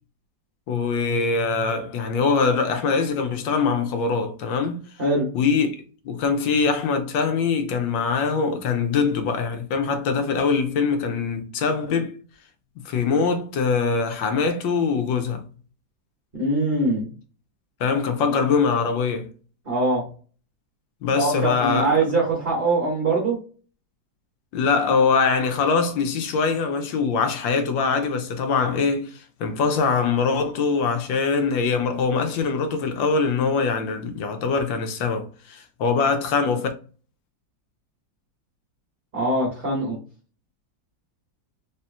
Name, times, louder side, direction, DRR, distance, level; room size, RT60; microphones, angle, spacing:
voice 1, 0.7-4.8 5.3-5.7 6.0-12.2 12.8-15.4 17.8-19.3 21.0-22.0 24.5-36.7, left 5 dB, 85° left, 1.4 m, -23 dB
voice 2, 16.3-17.1 19.6-20.0 21.1-23.4 39.1-40.0, right 2 dB, 30° right, 1.6 m, -22 dB
4.3 x 3.3 x 2.2 m
omnidirectional pair, 2.0 m